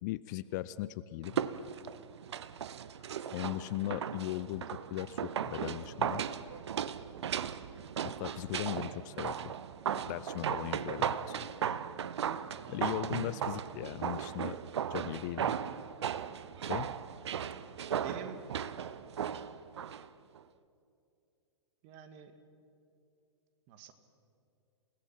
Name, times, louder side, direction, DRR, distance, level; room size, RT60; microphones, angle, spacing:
voice 1, 0.0-1.4 3.3-6.2 8.0-9.5 10.1-11.5 12.7-14.6 14.9-15.6 16.6-16.9, left 16 dB, 35° left, 17 dB, 0.5 m, -38 dB
sound 1, 1.2-20.1 20.4-20.5, right 8 dB, 60° right, 0.8 m, -37 dB
voice 2, 12.6-13.0 18.0-18.4 21.8-22.3 23.7-23.9, right 8 dB, 35° right, 8 dB, 1.9 m, -47 dB
28.0 x 18.0 x 5.8 m, 2.5 s
figure-of-eight pair, 110°, 16 cm